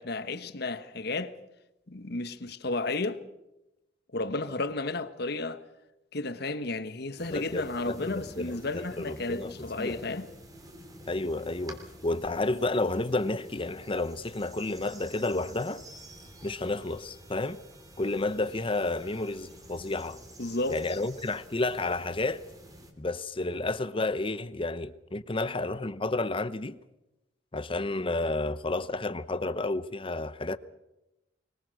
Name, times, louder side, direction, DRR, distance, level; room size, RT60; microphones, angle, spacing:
voice 1, 0.0-1.3 1.9-3.2 4.1-5.6 6.1-10.3 20.4-20.8, left 2 dB, 60° left, 1.3 m, -33 dB
sound 1, 7.2-22.9, right 1 dB, 20° right, 3.7 m, -50 dB
voice 2, 7.3-10.0 11.1-15.8 16.4-17.6 18.0-20.2 20.7-22.4 23.0-26.8 27.5-30.6, left 2 dB, 30° left, 0.8 m, -31 dB
24.5 x 22.0 x 6.4 m
head